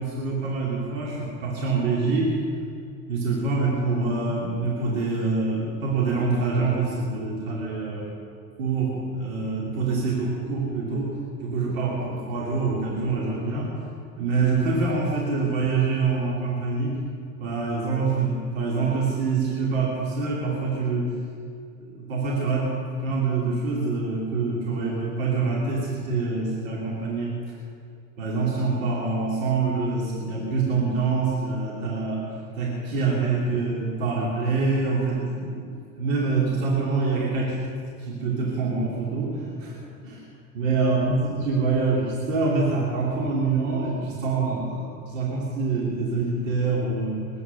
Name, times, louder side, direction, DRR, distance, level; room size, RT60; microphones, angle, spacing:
voice 1, 0.0-2.3 3.1-8.1 8.6-13.7 14.2-17.0 17.4-21.1 21.8-22.7 23.0-27.4 28.2-32.3 32.6-35.6 36.0-37.6 38.0-39.8 40.0-40.3 40.5-47.3, right 4 dB, 75° right, -3 dB, 2.7 m, -25 dB
19.5 x 9.5 x 6.8 m, 2.5 s
hypercardioid pair, 65°, 39 cm